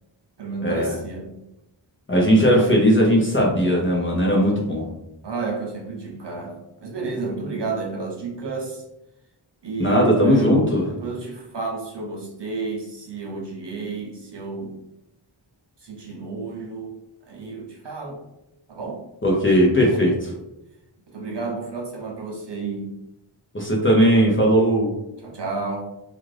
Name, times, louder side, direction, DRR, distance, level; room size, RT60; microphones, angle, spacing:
voice 1, 0.4-1.4 5.2-8.8 9.6-14.8 15.8-17.0 17.2-18.2 18.7-19.0 19.9-20.2 21.1-23.0 25.2-25.9, right 4 dB, 60° right, -1 dB, 0.6 m, -31 dB
voice 2, 2.1-4.9 9.8-10.9 19.2-20.1 23.5-24.9, equal, 25° left, -3 dB, 0.6 m, -18 dB
2.5 x 2.4 x 3.2 m, 0.89 s
wide cardioid pair, 70°, 48 cm